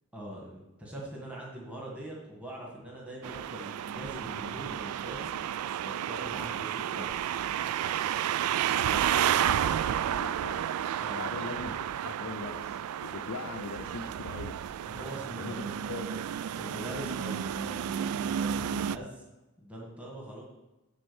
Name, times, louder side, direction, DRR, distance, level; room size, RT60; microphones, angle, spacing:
voice 1, 0.1-5.3 5.8-7.4 11.0-11.4 14.9-15.7 16.1-16.2 16.6-19.2 19.6-20.4, equal, 5° right, -4 dB, 1.8 m, -42 dB
sound 1, 3.2-19.0, right 10 dB, 75° right, 0.3 m, -31 dB
voice 2, 8.6-10.7 11.1-14.6 15.4-16.3, left 4 dB, 65° left, 2 dB, 0.5 m, -41 dB
11.0 x 3.9 x 7.0 m, 1.0 s
head